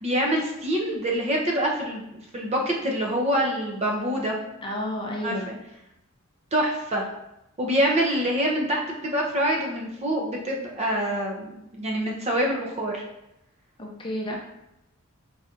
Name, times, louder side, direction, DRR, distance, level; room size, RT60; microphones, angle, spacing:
voice 1, 0.0-4.3 5.2-5.3 6.5-7.0 7.6-13.0, equal, 30° right, -1 dB, 0.7 m, -25 dB
voice 2, 4.6-5.5 13.8-14.4, left 1 dB, 25° left, -1 dB, 0.6 m, -31 dB
4.1 x 3.9 x 2.5 m, 0.86 s
head